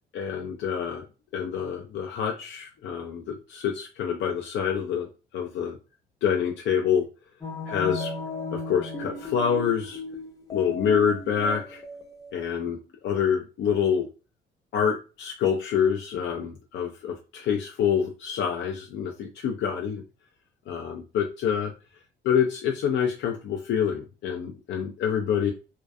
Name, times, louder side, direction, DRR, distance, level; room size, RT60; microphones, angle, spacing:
voice 1, 0.1-1.1 1.3-5.1 5.3-5.8 6.2-7.1 7.7-8.1 8.5-10.0 10.5-11.8 12.3-12.8 13.0-14.1 14.7-20.0 20.7-21.7 22.2-25.5, left 7 dB, 65° left, 2 dB, 0.4 m, -26 dB
sound 1, 7.4-12.3, left 2 dB, 15° left, 0.6 m, -36 dB
2.3 x 2.2 x 2.5 m, 0.32 s
cardioid pair, 90°, 20 cm